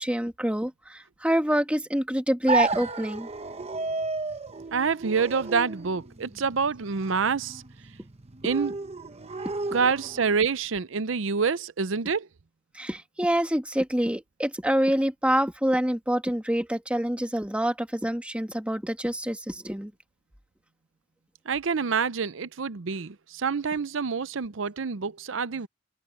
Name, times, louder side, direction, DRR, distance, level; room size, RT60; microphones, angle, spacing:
voice 1, 0.0-3.3 12.7-19.9, equal, 5° right, 2.1 m, -26 dB
sound 1, 2.5-10.4, right 3 dB, 35° right, 1.1 m, -33 dB
voice 2, 4.7-7.6 8.4-8.8 9.7-12.3 21.5-25.7, right 5 dB, 80° right, 0.7 m, -27 dB
head